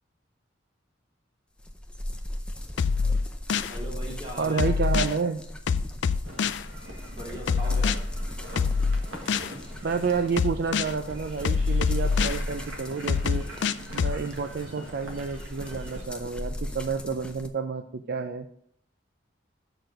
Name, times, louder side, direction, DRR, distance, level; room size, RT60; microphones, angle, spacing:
sound 1, 1.6-17.5, left 1 dB, 5° left, 0.6 m, -39 dB
sound 2, 2.8-3.7 4.6-5.1 5.7-6.6 7.5-8.0 8.6-9.5 10.4-10.9 11.4-12.4 13.1-14.2, left 5 dB, 65° left, 0.4 m, -24 dB
voice 1, 3.7-4.8 7.1-8.0, equal, 25° right, -3 dB, 2.6 m, -39 dB
voice 2, 4.4-5.4 9.8-13.4 13.9-18.6, right 5 dB, 55° right, 7 dB, 0.4 m, -30 dB
sound 3, 6.2-16.0, right 1 dB, 90° right, 1.6 m, -44 dB
6.8 x 6.0 x 5.2 m, 0.67 s
head